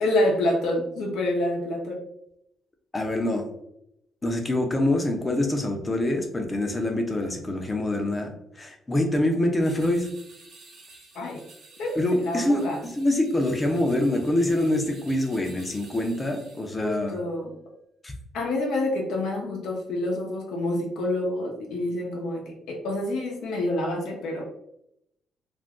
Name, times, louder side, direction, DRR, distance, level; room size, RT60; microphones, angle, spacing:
voice 1, 0.0-2.0 11.1-11.4 11.8-12.8 16.8-17.5 18.3-24.4, left 1 dB, 80° left, 0 dB, 0.7 m, -27 dB
voice 2, 2.9-3.5 4.2-10.1 12.0-17.2 18.0-18.1, left 1 dB, 25° left, 4 dB, 0.6 m, -25 dB
sound 1, 9.6-16.9, right 3 dB, 75° right, 1.0 m, -51 dB
2.5 x 2.2 x 3.6 m, 0.77 s
cardioid pair, 90°, 0 cm